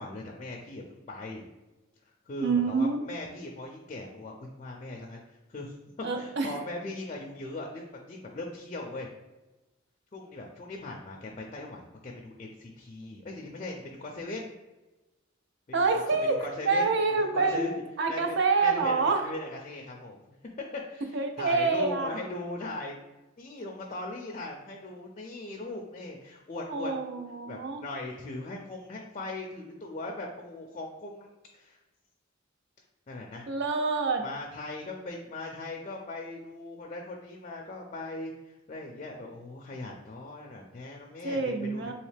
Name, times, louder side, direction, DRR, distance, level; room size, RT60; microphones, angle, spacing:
voice 1, 0.0-1.4 2.0-5.7 6.1-9.1 10.1-14.5 15.8-16.0 16.4-16.9 17.2-17.7 18.1-18.4 18.6-20.2 20.7-23.0 23.4-26.9 27.5-31.8 33.1-33.5 34.2-41.9, left 2 dB, 35° left, 0 dB, 0.4 m, -39 dB
voice 2, 2.4-3.1 6.0-6.6 15.7-19.3 21.1-22.2 26.7-27.8 33.5-34.2 41.2-41.9, right 4 dB, 60° right, 6 dB, 0.5 m, -27 dB
3.1 x 2.8 x 3.3 m, 1.1 s
head